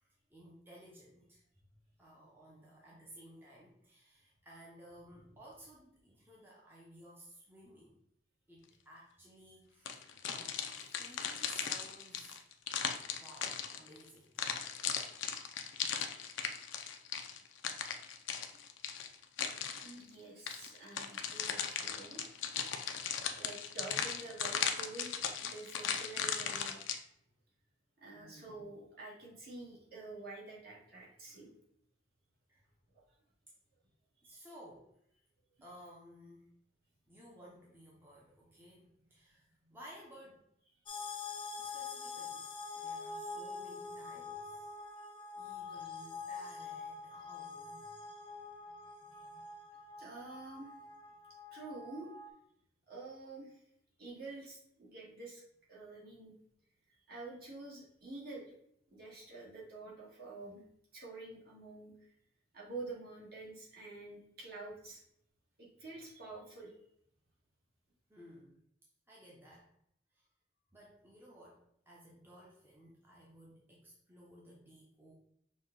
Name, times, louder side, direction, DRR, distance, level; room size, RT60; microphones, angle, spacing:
voice 1, 0.0-1.4 2.0-8.0 8.5-10.5 11.0-12.4 13.2-14.3 28.1-28.6 32.5-32.7 34.2-34.9 35.6-36.5 37.1-40.5 41.6-42.5 42.8-44.7 45.4-48.1 48.3-49.4 68.1-68.6 69.1-69.7 70.1-70.2 70.7-75.1, equal, 10° right, -5 dB, 0.7 m, -57 dB
sound 1, 9.9-14.0 14.4-20.0 20.5-27.0, left 7 dB, 80° left, 0.5 m, -37 dB
voice 2, 19.8-22.2 23.4-26.8 28.0-31.5 34.2-34.4 49.1-49.3 50.0-50.7 51.5-52.1 52.9-53.5 54.0-55.4 55.7-56.3 57.1-58.5 58.9-60.6 60.9-62.1 62.5-65.0 65.6-66.7, right 3 dB, 55° right, -5 dB, 1.7 m, -48 dB
sound 2, 40.9-52.3, left 4 dB, 25° left, 0.5 m, -45 dB
6.1 x 2.3 x 3.7 m, 0.71 s
head